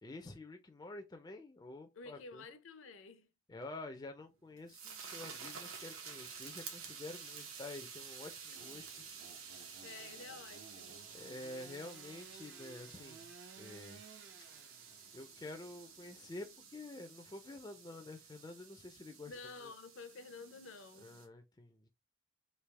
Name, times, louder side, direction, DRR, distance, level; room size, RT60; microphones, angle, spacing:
voice 1, 0.0-2.4 3.5-8.9 9.2-9.8 11.1-13.3 13.6-14.0 15.1-19.4 19.6-19.7 21.0-21.9, left 2 dB, 20° left, 0.4 m, -49 dB
voice 2, 1.9-3.3 8.5-8.6 9.4-11.2 19.3-21.1, left 4 dB, 65° left, 0.6 m, -51 dB
sound 1, 4.3-21.3, right 6 dB, 80° right, 0.9 m, -51 dB
Engine / Sawing, 8.5-16.8, right 5 dB, 55° right, 0.4 m, -58 dB
3.3 x 2.7 x 3.2 m
head